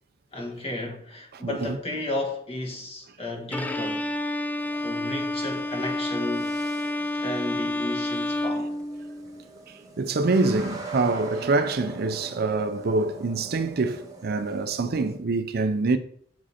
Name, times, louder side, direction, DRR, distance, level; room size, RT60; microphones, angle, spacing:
voice 1, 0.3-4.1 4.8-6.5 7.2-8.8 10.4-10.5, left 1 dB, 30° left, 1.5 m, -33 dB
voice 2, 1.4-1.8 10.0-16.0, right 3 dB, 55° right, 0.5 m, -25 dB
Bowed string instrument, 3.5-9.4, left 1 dB, 10° left, 0.4 m, -29 dB
sound 1, 4.6-15.2, right 3 dB, 20° right, 1.3 m, -43 dB
8.1 x 5.0 x 4.2 m
head